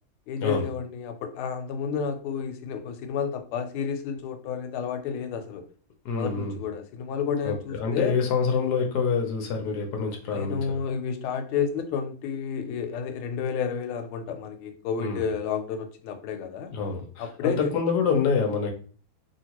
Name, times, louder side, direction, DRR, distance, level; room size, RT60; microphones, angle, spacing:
voice 1, 0.3-5.7 6.1-8.2 10.3-16.7 17.2-17.7, left 6 dB, 85° left, 7 dB, 1.4 m, -31 dB
voice 2, 6.0-6.6 7.4-10.6 15.0-15.2 16.7-18.7, left 5 dB, 65° left, 3 dB, 1.0 m, -26 dB
3.0 x 2.8 x 2.9 m, 0.41 s
omnidirectional pair, 2.3 m